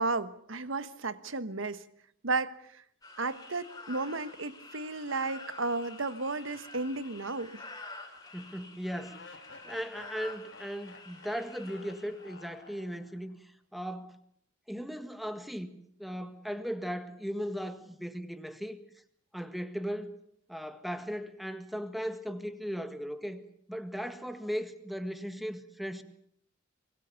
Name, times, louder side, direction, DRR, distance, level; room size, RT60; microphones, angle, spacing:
voice 1, 0.0-1.8 2.2-2.8 3.2-7.6, right 3 dB, 90° right, 1.4 m, -33 dB
sound 1, 3.0-12.7, left 3 dB, 20° left, 4.2 m, -49 dB
sound 2, 6.5-7.8 8.1-8.2 9.1-13.4, left 4 dB, 75° left, 1.9 m, -54 dB
voice 2, 8.3-14.2 14.7-15.7 16.0-18.8 19.3-20.2 20.5-23.4 23.7-26.0, equal, ahead, 1.7 m, -37 dB
25.0 x 22.0 x 7.1 m
head